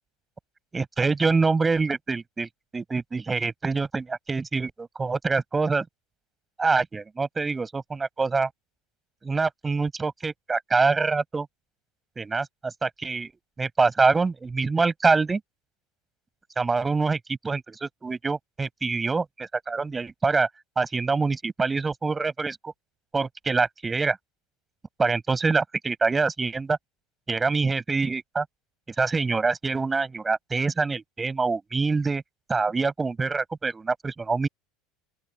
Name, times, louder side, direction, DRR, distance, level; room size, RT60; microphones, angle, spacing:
voice 1, 0.7-5.8 6.6-8.5 9.2-11.5 12.2-13.3 13.6-15.4 16.6-17.2 17.4-19.2 19.7-20.5 20.8-22.7 23.1-24.2 25.0-26.8 27.3-28.4 29.0-32.2 32.5-34.5, right 4 dB, 15° right, 6.6 m, -25 dB
open air
figure-of-eight pair, 75°, 0 cm